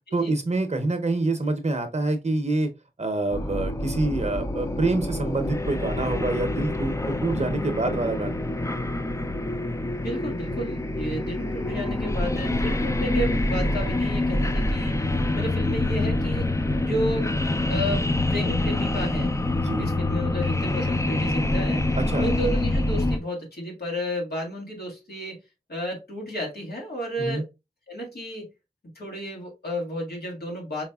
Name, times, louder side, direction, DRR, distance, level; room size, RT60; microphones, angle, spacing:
voice 1, 0.1-2.7 3.0-8.4 19.6-19.9 22.0-22.2 27.2-27.4, right 2 dB, 45° right, 0.7 m, -26 dB
sound 1, 3.3-23.2, left 2 dB, 20° left, 0.4 m, -26 dB
voice 2, 10.0-17.4 17.7-18.0 18.3-19.3 19.8-25.4 25.7-27.5 27.9-28.5 29.0-30.8, equal, 85° left, 1.8 m, -32 dB
4.8 x 3.1 x 2.3 m
wide cardioid pair, 80°, 16 cm